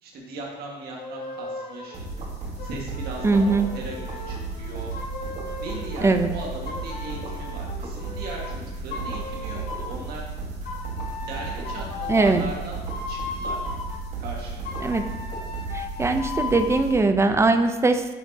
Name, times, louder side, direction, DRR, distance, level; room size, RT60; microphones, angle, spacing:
voice 1, 0.0-2.0 2.6-4.9 5.6-10.3 11.2-12.8 13.1-13.6 14.2-14.9, right 2 dB, 70° right, -2 dB, 1.7 m, -38 dB
sound 1, 1.0-2.0 2.6-6.0 6.7-8.5 8.9-10.0 10.7-14.0 14.7-16.9, left 4 dB, 70° left, 1.8 m, -36 dB
sound 2, 1.9-17.4, right 3 dB, 40° right, 1.5 m, -34 dB
voice 2, 3.2-3.7 6.0-6.3 12.1-12.5 14.8-15.1 15.7-18.0, right 3 dB, 15° right, 8 dB, 0.5 m, -21 dB
8.9 x 4.3 x 2.8 m, 1.2 s
cardioid pair, 110°, 17 cm